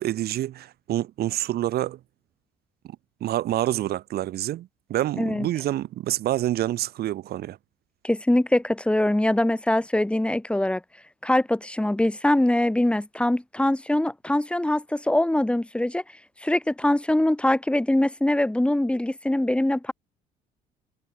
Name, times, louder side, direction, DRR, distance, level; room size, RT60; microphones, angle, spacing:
voice 1, 0.0-2.0 3.2-7.6, right 13 dB, 70° right, 2.7 m, -27 dB
voice 2, 8.0-10.8 11.2-16.0 16.4-19.9, left 1 dB, 5° left, 4.3 m, -23 dB
cardioid pair, 110°, 17 cm